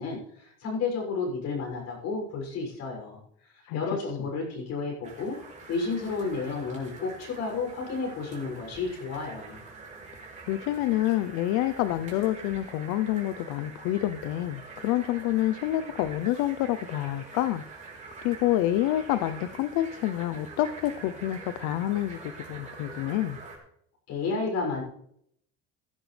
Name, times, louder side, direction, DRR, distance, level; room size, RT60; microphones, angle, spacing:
voice 1, 0.0-5.4 5.7-9.6 24.1-24.8, left 4 dB, 60° left, 1 dB, 6.8 m, -32 dB
sound 1, 5.0-23.6, right 4 dB, 25° right, 4.2 m, -45 dB
voice 2, 10.5-17.6 18.2-23.4, left 14 dB, 80° left, 12 dB, 0.7 m, -28 dB
16.0 x 12.5 x 3.4 m, 0.69 s
cardioid pair, 130°, 30 cm